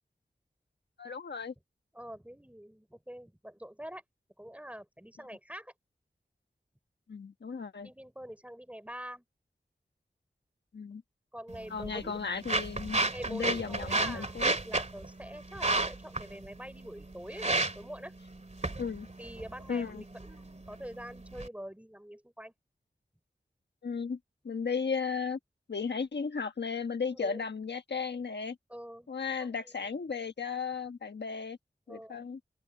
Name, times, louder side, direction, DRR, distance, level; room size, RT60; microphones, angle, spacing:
voice 1, 1.0-1.5 7.1-7.9 10.7-11.0 11.7-13.0 13.3-14.6 18.8-19.1 19.7-20.0 23.8-24.2 24.4-25.4 25.7-28.6 29.1-31.6 31.9-32.4, left 5 dB, 90° left, 1.4 m, -35 dB
voice 2, 1.9-4.0 4.4-5.7 7.8-9.2 11.3-12.2 13.1-17.5 17.8-18.2 19.2-22.5 27.2-27.5 28.7-29.1 29.4-29.5 29.8-29.9 31.9-32.3, equal, 10° right, 3.7 m, -45 dB
sound 1, 11.5-21.5, right 2 dB, 40° right, 2.3 m, -34 dB
open air
wide cardioid pair, 55°, 17 cm